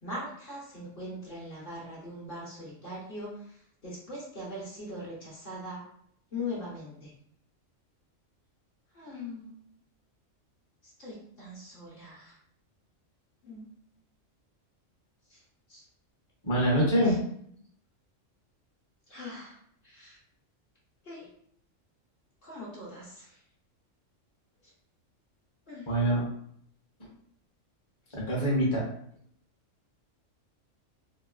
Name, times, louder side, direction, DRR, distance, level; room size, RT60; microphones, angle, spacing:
voice 1, 0.0-5.8 6.3-7.1 8.9-9.6 10.8-12.4 13.4-13.7 15.3-15.4 15.7-15.8 17.0-17.2 19.1-19.6 19.8-20.2 21.0-21.3 22.4-23.4 25.7-25.9, left 1 dB, 50° left, -5 dB, 1.0 m, -41 dB
voice 2, 16.4-17.2 25.9-26.2 28.1-28.8, equal, 30° left, -5 dB, 0.7 m, -25 dB
3.0 x 2.3 x 2.3 m, 0.66 s
omnidirectional pair, 1.3 m